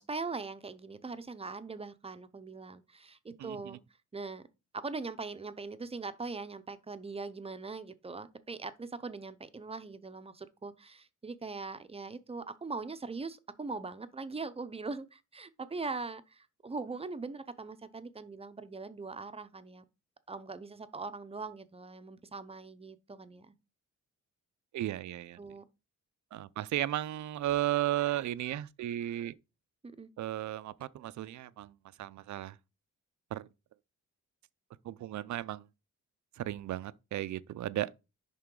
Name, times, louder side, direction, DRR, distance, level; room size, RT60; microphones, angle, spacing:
voice 1, 0.0-3.8 4.1-4.5 4.7-19.8 20.3-23.5 25.4-25.6 30.0-30.1, right 3 dB, 20° right, 0.6 m, -41 dB
voice 2, 3.4-3.8 24.7-25.4 26.3-29.3 30.2-31.7 32.0-32.6 33.3-33.5 34.8-35.6 36.4-37.9, right 13 dB, 65° right, 0.5 m, -34 dB
10.5 x 3.7 x 3.8 m
wide cardioid pair, 140°, 31 cm